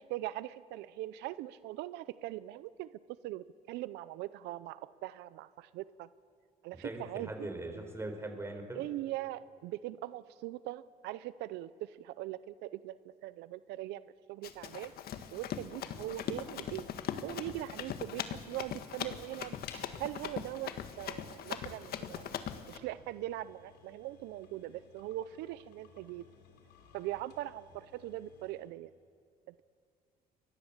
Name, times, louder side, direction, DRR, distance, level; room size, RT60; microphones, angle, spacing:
voice 1, 0.0-2.9 3.2-6.1 6.6-7.5 8.7-14.9 15.3-16.8 17.2-22.4 22.7-26.2 26.9-28.9 29.5-29.6, right 15 dB, 90° right, 16 dB, 0.6 m, -41 dB
voice 2, 6.8-8.8, right 2 dB, 15° right, 5 dB, 4.4 m, -40 dB
Run, 14.4-22.8, left 9 dB, 65° left, 1.6 m, -40 dB
sound 1, 19.6-28.8, left 7 dB, 85° left, 3.5 m, -58 dB
29.5 x 22.5 x 7.3 m, 2.2 s
cardioid pair, 110°, 17 cm